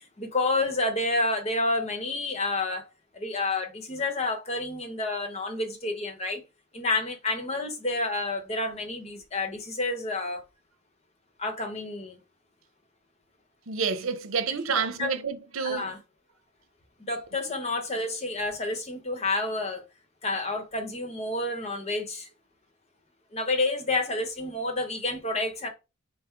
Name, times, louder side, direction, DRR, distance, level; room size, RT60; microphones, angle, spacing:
voice 1, 0.2-2.9 3.1-6.4 6.7-10.4 11.4-12.2 15.0-15.1 15.6-16.0 17.0-19.8 20.2-22.3 23.3-25.7, left 2 dB, 30° left, 0.9 m, -29 dB
voice 2, 13.7-15.9, right 5 dB, 90° right, 0.7 m, -29 dB
5.5 x 2.1 x 4.6 m
head